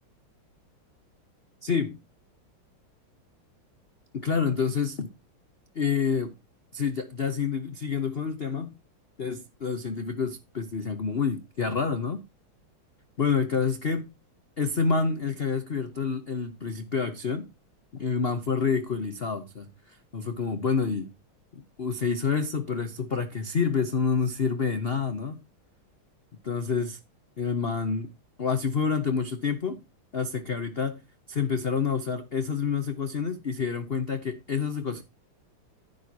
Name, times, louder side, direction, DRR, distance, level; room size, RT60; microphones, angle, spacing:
voice 1, 1.6-2.0 4.1-5.1 5.7-6.3 6.7-8.8 9.2-12.2 13.2-14.1 14.6-17.5 17.9-21.1 21.5-25.4 26.4-27.0 27.4-28.1 28.4-29.8 30.1-31.0 31.3-35.0, left 5 dB, 45° left, 0.8 m, -28 dB
11.0 x 10.0 x 2.9 m
omnidirectional pair, 2.3 m